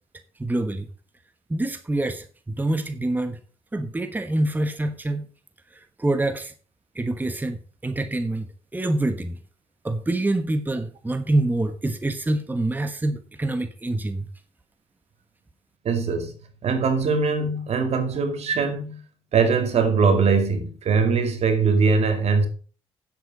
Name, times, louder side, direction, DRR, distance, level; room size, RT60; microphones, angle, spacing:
voice 1, 0.4-0.9 1.5-3.4 3.7-5.3 6.0-6.5 6.9-8.5 8.7-9.4 9.8-14.3, right 2 dB, 15° right, 1.1 m, -26 dB
voice 2, 15.8-16.3 16.6-19.0 19.3-22.5, right 5 dB, 65° right, 2.3 m, -21 dB
9.2 x 8.0 x 5.2 m
cardioid pair, 75°, 12 cm